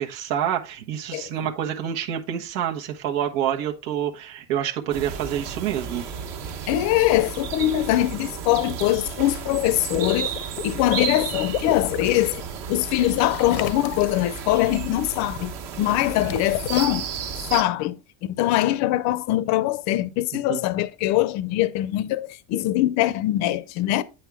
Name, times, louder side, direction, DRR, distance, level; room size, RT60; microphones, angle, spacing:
voice 1, 0.0-6.1 20.5-20.6, right 10 dB, 85° right, 1.3 m, -27 dB
sound 1, 4.9-17.6, right 7 dB, 55° right, 1.5 m, -33 dB
voice 2, 6.7-10.3 10.6-17.1 17.5-24.0, left 15 dB, 45° left, 0.5 m, -23 dB
Water / Liquid, 9.7-12.2 13.3-14.3 15.8-16.8, left 11 dB, 85° left, 0.8 m, -32 dB
8.9 x 5.6 x 3.4 m
cardioid pair, 175°, 38 cm